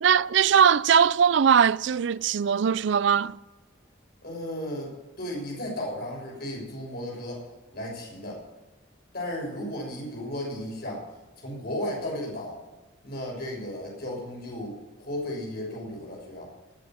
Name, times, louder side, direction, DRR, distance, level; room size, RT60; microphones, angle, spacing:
voice 1, 0.0-3.4, right 7 dB, 65° right, 0.4 m, -20 dB
voice 2, 4.2-7.4 7.7-8.4 9.1-11.0 11.4-12.6 13.0-16.5, left 1 dB, 50° left, 6.6 m, -34 dB
20.0 x 8.1 x 7.6 m
head